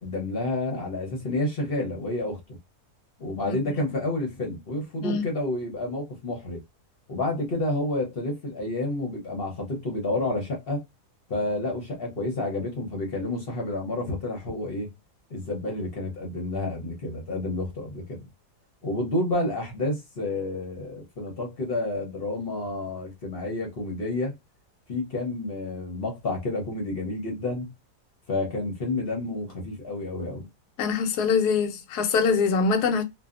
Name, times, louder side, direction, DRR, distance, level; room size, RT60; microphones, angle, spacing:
voice 1, 0.0-2.4 3.2-6.6 7.1-10.8 11.3-14.9 15.3-18.3 18.8-24.3 24.9-27.7 28.3-30.5, left 2 dB, 45° left, 0.9 m, -30 dB
voice 2, 30.8-33.0, left 5 dB, 80° left, 1.2 m, -23 dB
2.7 x 2.4 x 2.4 m
omnidirectional pair, 1.7 m